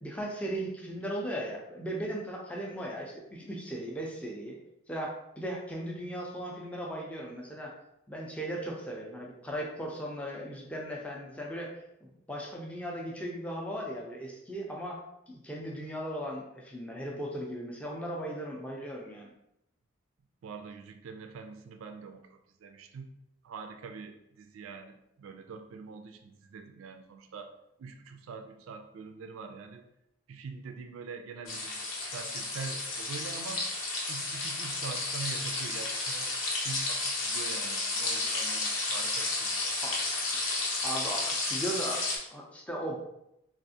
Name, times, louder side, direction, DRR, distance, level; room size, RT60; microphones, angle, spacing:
voice 1, 0.0-4.6 4.9-7.7 8.1-11.7 12.0-15.0 15.3-19.3 39.8-40.0 40.8-43.0, right 1 dB, 5° left, -2 dB, 0.4 m, -37 dB
voice 2, 20.4-23.1 23.4-27.5 27.8-29.8 30.3-33.7 34.1-39.8, right 5 dB, 80° right, 7 dB, 0.3 m, -44 dB
sound 1, 31.5-42.2, left 2 dB, 80° left, 0.8 m, -32 dB
3.5 x 2.4 x 2.7 m, 0.82 s
head